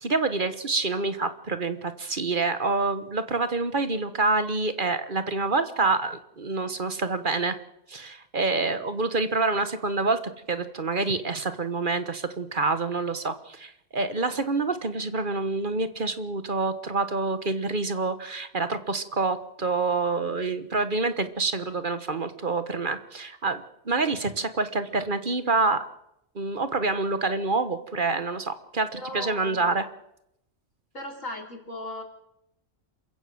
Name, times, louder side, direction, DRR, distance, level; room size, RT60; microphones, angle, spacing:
voice 1, 0.0-7.6 7.9-10.2 10.5-25.9 26.3-29.8, right 3 dB, 40° right, 11 dB, 1.4 m, -27 dB
voice 2, 28.9-29.7 30.9-32.0, left 1 dB, 85° left, 1 dB, 4.6 m, -37 dB
27.5 x 15.0 x 7.8 m, 0.82 s
omnidirectional pair, 1.3 m